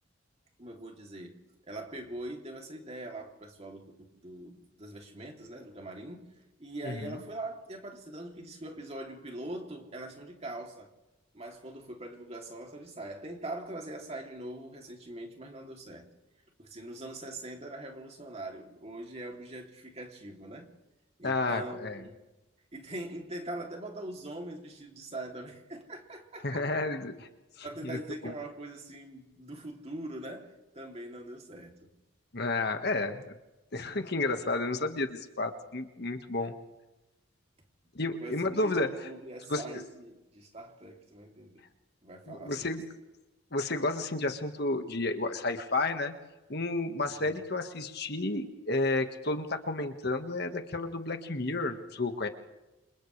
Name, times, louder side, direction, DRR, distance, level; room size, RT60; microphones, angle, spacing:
voice 1, 0.6-1.4 1.7-6.3 6.6-10.9 11.3-16.1 16.6-20.7 21.2-22.2 22.7-26.7 27.6-31.9 36.3-36.5 38.0-41.6 42.0-42.7 47.1-47.4, right 1 dB, 30° right, 3.0 m, -42 dB
voice 2, 6.8-7.2 21.2-22.0 26.4-27.3 27.8-28.0 28.2-28.3 32.3-33.2 33.7-36.5 37.9-39.1 39.5-39.6 42.3-42.8 43.5-46.1 46.5-52.3, left 2 dB, 50° left, 1.6 m, -31 dB
29.5 x 26.5 x 3.4 m
head